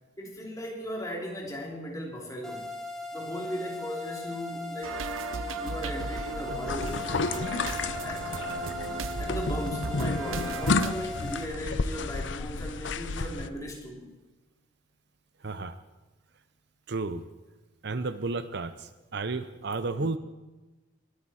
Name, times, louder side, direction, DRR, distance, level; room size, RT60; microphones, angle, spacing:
voice 1, 0.2-2.7 3.1-5.1 5.6-7.6 8.0-8.4 9.2-14.1, equal, 15° left, -1 dB, 2.9 m, -37 dB
sound 1, 2.4-11.4, left 2 dB, ahead, 1.2 m, -39 dB
sound 2, 4.8-10.9, right 4 dB, 85° right, 0.7 m, -36 dB
sound 3, 6.7-13.5, left 3 dB, 65° left, 0.7 m, -32 dB
voice 2, 15.4-15.8 16.9-17.2 17.8-20.2, right 3 dB, 55° right, 12 dB, 0.7 m, -32 dB
21.5 x 13.0 x 4.3 m, 1.1 s
head